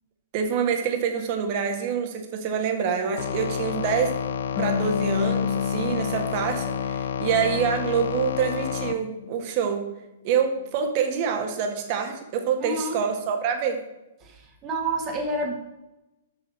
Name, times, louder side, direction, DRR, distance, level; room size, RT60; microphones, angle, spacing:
voice 1, 0.3-4.1 4.6-9.8 10.2-13.8, right 7 dB, 45° right, 4 dB, 1.8 m, -26 dB
sound 1, 3.2-8.9, left 7 dB, 75° left, 0.6 m, -30 dB
Harp, 4.6-7.9 8.3-9.4, left 8 dB, 35° left, 1.7 m, -31 dB
voice 2, 12.6-13.0 14.2-15.5, right 1 dB, 30° right, 2 dB, 1.9 m, -29 dB
7.4 x 6.3 x 6.3 m, 0.97 s
hypercardioid pair, 120°, 0 cm